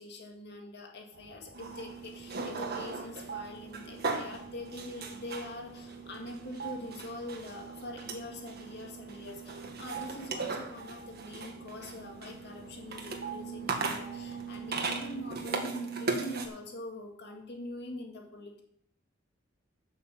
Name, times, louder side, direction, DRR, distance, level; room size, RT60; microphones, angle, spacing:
voice 1, 0.0-18.6, left 1 dB, 60° left, 1 dB, 2.0 m, -44 dB
sound 1, 1.1-15.6, right 5 dB, 75° right, 1.5 m, -50 dB
sound 2, 1.5-16.5, right 4 dB, 55° right, 1.7 m, -38 dB
11.0 x 6.4 x 7.4 m, 0.68 s
head